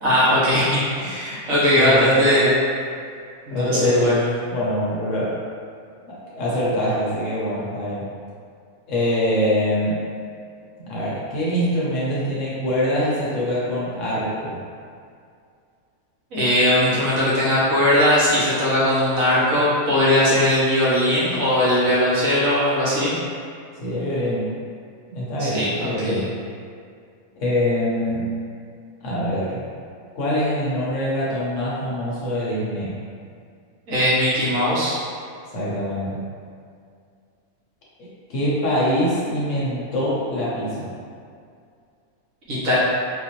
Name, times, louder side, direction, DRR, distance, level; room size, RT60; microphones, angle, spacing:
voice 1, 0.0-2.6 3.5-4.3 16.3-23.1 25.4-26.2 33.9-35.0 42.5-42.8, left 1 dB, 65° right, -9 dB, 1.5 m, -19 dB
voice 2, 1.7-2.3 3.5-4.1 4.5-5.4 6.1-8.0 8.9-10.0 10.8-14.6 23.8-24.6 25.1-26.3 27.4-28.3 29.0-29.7 30.1-33.0 35.5-36.2 38.0-40.9, equal, 60° left, -7 dB, 1.1 m, -24 dB
4.1 x 2.6 x 2.9 m, 2.3 s
omnidirectional pair, 1.5 m